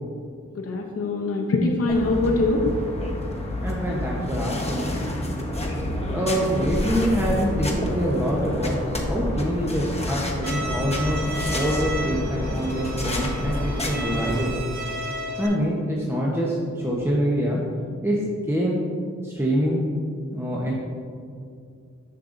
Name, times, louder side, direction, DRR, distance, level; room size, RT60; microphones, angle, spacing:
voice 1, 0.5-2.7, left 2 dB, 55° left, 0 dB, 0.7 m, -23 dB
sound 1, 1.9-14.5, left 1 dB, 20° left, 1.1 m, -29 dB
voice 2, 3.6-5.0 6.1-8.8 9.1-14.5 15.4-17.6 18.0-18.2 18.5-18.8 19.2-19.8 20.3-20.7, equal, 10° right, -4 dB, 0.9 m, -25 dB
Bowed string instrument, 10.4-15.5, right 1 dB, 75° right, 0.8 m, -33 dB
6.6 x 6.6 x 2.6 m, 2.3 s
cardioid pair, 50°, 29 cm